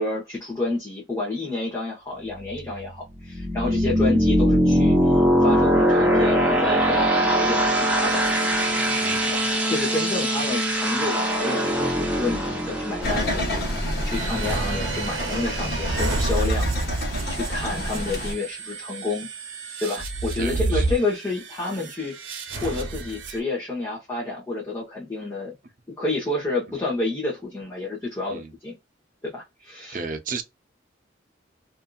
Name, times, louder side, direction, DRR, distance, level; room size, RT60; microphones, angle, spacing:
voice 1, 0.0-8.2 9.3-17.0 17.3-19.3 19.8-22.1 22.5-25.5 26.0-28.7 29.2-30.0, left 2 dB, 15° left, 1.0 m, -29 dB
sound 1, 2.2-14.9, equal, 10° right, 0.7 m, -22 dB
voice 2, 9.0-9.4 16.4-16.6 17.1-17.4 20.4-21.0 28.3-28.5 29.9-30.4, right 4 dB, 45° right, 0.6 m, -34 dB
sound 2, 13.0-18.3, left 1 dB, 55° left, 1.1 m, -29 dB
sound 3, 14.1-23.4, right 2 dB, 90° right, 0.7 m, -30 dB
2.6 x 2.6 x 2.3 m
head